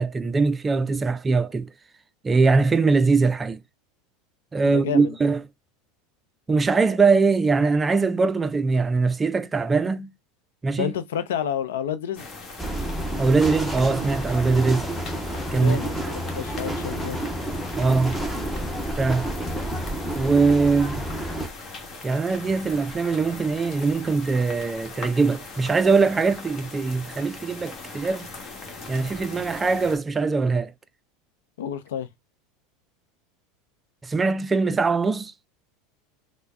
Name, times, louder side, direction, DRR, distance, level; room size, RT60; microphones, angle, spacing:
voice 1, 0.0-1.7 2.2-3.6 4.5-5.4 6.5-10.1 10.6-10.9 13.2-14.9 15.5-15.8 17.8-18.2 19.0-19.3 20.1-21.0 22.0-28.3 28.9-30.7 34.0-35.3, right 4 dB, 20° right, 0.4 m, -22 dB
voice 2, 4.6-5.2 10.8-12.3 15.5-17.3 31.6-32.1, left 9 dB, 85° left, 0.5 m, -30 dB
sound 1, 12.2-30.0, left 3 dB, 40° left, 1.2 m, -40 dB
sound 2, 12.6-21.5, right 1 dB, 5° left, 0.8 m, -30 dB
3.4 x 2.1 x 3.4 m
hypercardioid pair, 105°, 0 cm